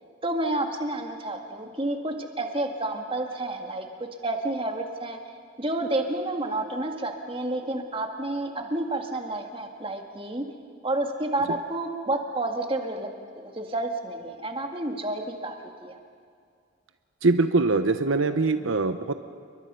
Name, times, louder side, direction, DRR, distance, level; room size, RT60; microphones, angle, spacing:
voice 1, 0.2-3.9 4.2-5.2 5.6-10.4 10.8-13.1 13.4-15.5 15.8-16.0, right 2 dB, 25° right, 3 dB, 1.9 m, -30 dB
voice 2, 17.2-19.1, right 3 dB, 75° right, 9 dB, 0.8 m, -22 dB
29.0 x 22.5 x 5.6 m, 2.2 s
head